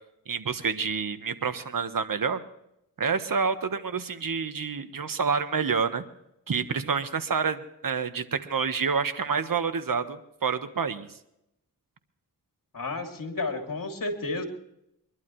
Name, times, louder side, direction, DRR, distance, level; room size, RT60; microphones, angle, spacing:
voice 1, 0.3-2.4 3.0-6.0 6.5-11.1, right 5 dB, 60° right, 10 dB, 1.4 m, -28 dB
voice 2, 12.7-14.4, left 3 dB, 60° left, 4 dB, 3.0 m, -31 dB
24.0 x 12.0 x 3.2 m, 0.79 s
cardioid pair, 45°, 37 cm